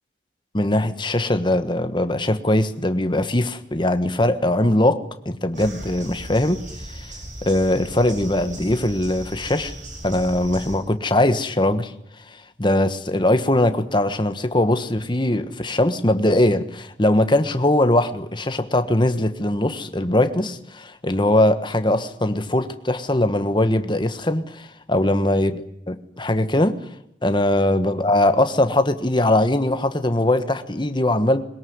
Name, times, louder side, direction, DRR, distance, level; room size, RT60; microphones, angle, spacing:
voice 1, 0.5-6.6 7.4-9.7 10.0-11.9 12.3-25.6 25.9-26.8 27.2-31.4, left 1 dB, 25° left, 9 dB, 1.4 m, -21 dB
sound 1, 5.5-10.8, right 1 dB, 45° right, 8.0 m, -37 dB
22.0 x 21.0 x 9.6 m, 0.76 s
head